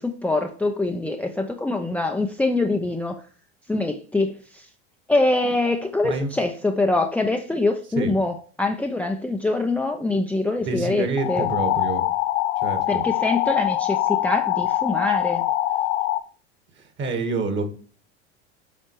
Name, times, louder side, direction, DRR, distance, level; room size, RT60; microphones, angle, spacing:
voice 1, 0.0-3.2 3.7-4.7 5.1-11.5 12.9-15.5, left 2 dB, 5° left, 4 dB, 0.6 m, -24 dB
voice 2, 10.6-12.1 12.6-13.0 16.8-17.7, right 3 dB, 35° right, 8 dB, 1.8 m, -27 dB
sound 1, 11.2-16.2, left 14 dB, 75° left, 0.7 m, -23 dB
7.6 x 4.3 x 4.7 m, 0.40 s
hypercardioid pair, 95°, 33 cm